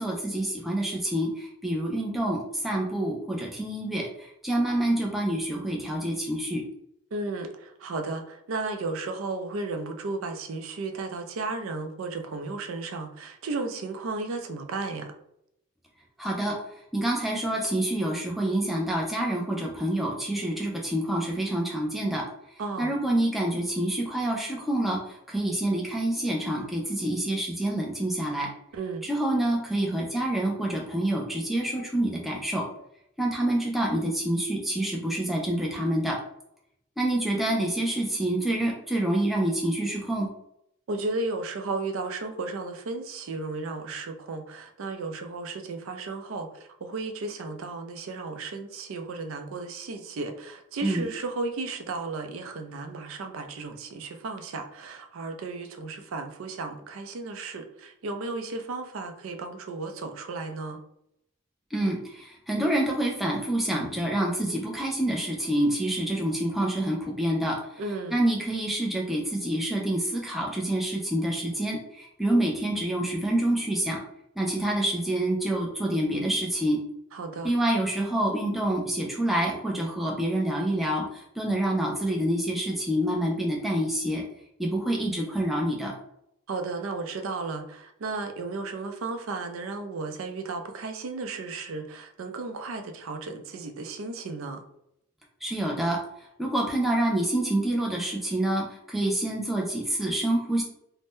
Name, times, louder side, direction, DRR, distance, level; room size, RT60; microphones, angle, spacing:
voice 1, 0.0-6.6 16.2-16.6 16.9-22.2 22.8-28.5 29.0-32.6 33.2-36.2 37.0-40.3 50.8-51.1 61.7-67.8 68.1-74.0 74.4-76.8 77.4-84.2 84.6-85.9 95.4-96.0 96.4-100.6, right 1 dB, ahead, -2 dB, 0.4 m, -27 dB
voice 2, 7.1-15.1 22.6-22.9 28.7-29.1 40.9-60.8 67.8-68.2 77.1-77.5 86.5-94.6, right 3 dB, 80° right, 6 dB, 0.4 m, -34 dB
2.6 x 2.0 x 3.5 m, 0.77 s
head